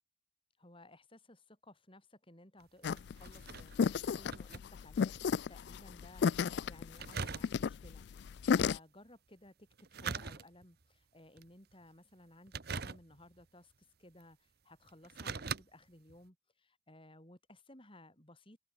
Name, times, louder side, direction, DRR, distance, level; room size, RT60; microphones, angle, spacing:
voice 1, 0.6-6.3 6.7-18.6, left 1 dB, 25° left, 5.1 m, -58 dB
sound 1, 2.6-5.4 5.7-5.8 7.0-7.9 9.7-10.8 11.4-11.7 12.5-13.4 14.2-14.3 14.9-15.6 16.1-16.2, right 5 dB, 50° right, 1.0 m, -42 dB
sound 2, 2.8-8.8, left 6 dB, 55° left, 0.3 m, -33 dB
head